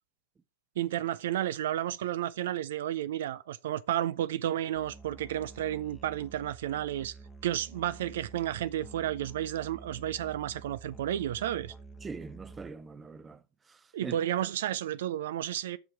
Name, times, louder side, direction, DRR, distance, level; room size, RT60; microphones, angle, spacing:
voice 1, 0.8-7.2 7.4-11.7 13.9-15.8, right 12 dB, 65° right, 0.3 m, -32 dB
Musical instrument, 4.8-12.7, right 4 dB, 15° left, 0.9 m, -49 dB
voice 2, 12.0-14.2, right 5 dB, 20° right, 0.7 m, -43 dB
7.2 x 6.0 x 4.7 m
hypercardioid pair, 95°, 0 cm